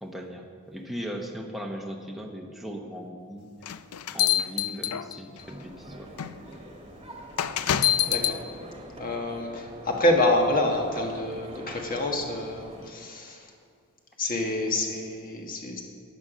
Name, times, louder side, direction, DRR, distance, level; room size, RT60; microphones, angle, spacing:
voice 1, 0.0-3.8 4.1-6.1, equal, ahead, 0 dB, 0.9 m, -38 dB
sound 1, 3.6-5.4 6.2-6.3 7.4-8.4, left 10 dB, 90° left, 0.5 m, -25 dB
sound 2, 5.4-12.9, right 1 dB, 25° right, 1.4 m, -45 dB
voice 2, 8.1-8.4 9.0-13.5 14.2-15.8, left 1 dB, 40° left, 1 dB, 1.5 m, -27 dB
12.0 x 9.0 x 6.3 m, 2.3 s
head